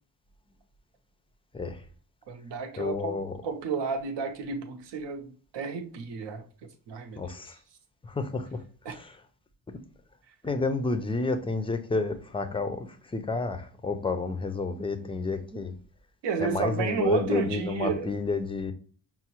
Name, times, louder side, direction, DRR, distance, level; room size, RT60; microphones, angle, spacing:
voice 1, 1.5-1.8 2.8-3.4 7.2-7.6 8.0-9.2 10.4-15.8 16.4-18.7, left 3 dB, 15° left, 0.3 m, -30 dB
voice 2, 2.3-3.1 3.4-6.4 6.9-7.2 8.9-9.0 16.2-18.1, right 5 dB, 80° right, 0.7 m, -31 dB
5.5 x 2.0 x 2.9 m
cardioid pair, 110°, 41 cm